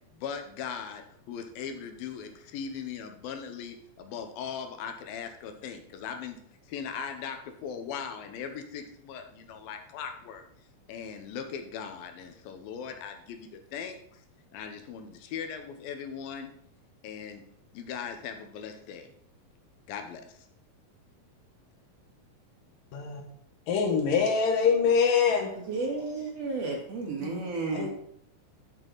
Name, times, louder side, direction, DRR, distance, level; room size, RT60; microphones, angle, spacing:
voice 1, 0.1-6.4 6.7-10.4 10.9-14.2 14.5-16.5 17.0-17.4 17.7-19.1 19.9-20.5, left 7 dB, 90° left, 6 dB, 2.8 m, -39 dB
voice 2, 23.7-25.5 27.2-27.4 27.7-27.9, left 6 dB, 75° left, 3 dB, 3.0 m, -24 dB
voice 3, 25.7-27.9, right 3 dB, 55° right, 0 dB, 2.3 m, -32 dB
12.0 x 6.5 x 4.0 m, 0.68 s
omnidirectional pair, 4.1 m